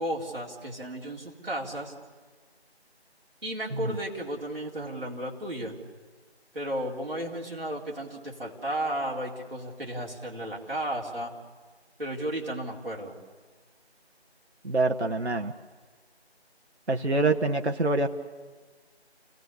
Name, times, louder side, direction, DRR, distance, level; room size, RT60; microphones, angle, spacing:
voice 1, 0.0-1.9 3.4-5.8 6.5-11.3 12.0-13.2, right 1 dB, 60° right, -2 dB, 4.2 m, -33 dB
voice 2, 14.6-15.5 16.9-18.1, right 2 dB, 85° right, 3 dB, 1.4 m, -25 dB
29.0 x 18.0 x 7.1 m, 1.4 s
figure-of-eight pair, 170°, 33 cm